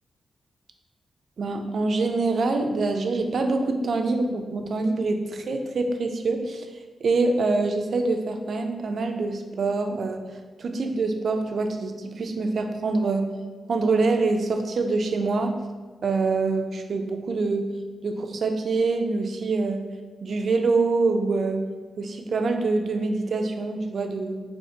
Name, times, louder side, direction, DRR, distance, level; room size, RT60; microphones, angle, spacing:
voice 1, 1.4-6.7 7.0-10.2 10.6-13.3 13.7-15.5 16.0-17.6 18.0-19.8 20.2-21.6 22.0-24.4, right 3 dB, 55° right, 5 dB, 0.4 m, -25 dB
4.4 x 2.8 x 2.7 m, 1.4 s
wide cardioid pair, 125°, 0 cm